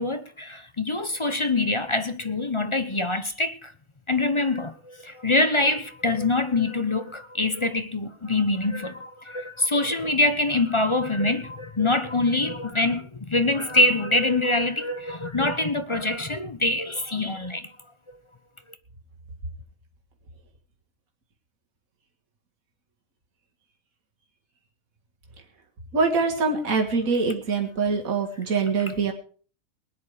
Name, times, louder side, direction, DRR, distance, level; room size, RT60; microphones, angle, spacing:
voice 1, 0.0-3.7 4.1-17.6, left 2 dB, 25° left, 0.7 m, -24 dB
voice 2, 25.9-29.1, right 4 dB, 70° right, 2.3 m, -24 dB
20.0 x 10.0 x 5.0 m
omnidirectional pair, 1.5 m